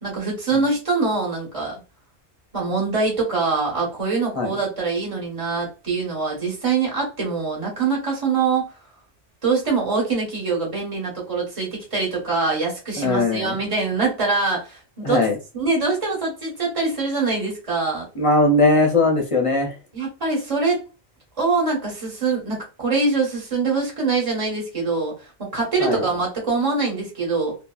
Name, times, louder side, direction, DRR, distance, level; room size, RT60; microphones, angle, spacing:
voice 1, 0.0-1.7 2.5-8.7 9.4-15.3 15.5-18.1 19.9-20.8 21.4-25.1 25.4-27.5, right 4 dB, 30° right, 1.2 m, -24 dB
voice 2, 13.0-13.6 15.0-15.4 18.2-19.7 25.8-26.0, left 2 dB, 40° left, 0.5 m, -19 dB
2.7 x 2.7 x 2.3 m
omnidirectional pair, 1.2 m